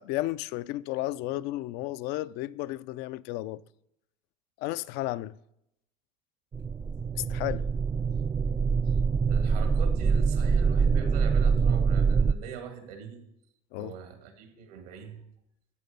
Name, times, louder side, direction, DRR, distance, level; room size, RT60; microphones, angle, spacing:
voice 1, 0.0-3.6 4.6-5.4 7.2-7.7 13.7-13.9, left 16 dB, 65° left, 0.5 m, -33 dB
sound 1, 6.5-12.3, right 5 dB, 15° right, 0.3 m, -25 dB
voice 2, 9.3-13.2 13.8-15.2, right 7 dB, 85° right, 2.3 m, -42 dB
14.5 x 7.0 x 5.4 m
supercardioid pair, 120°, 19 cm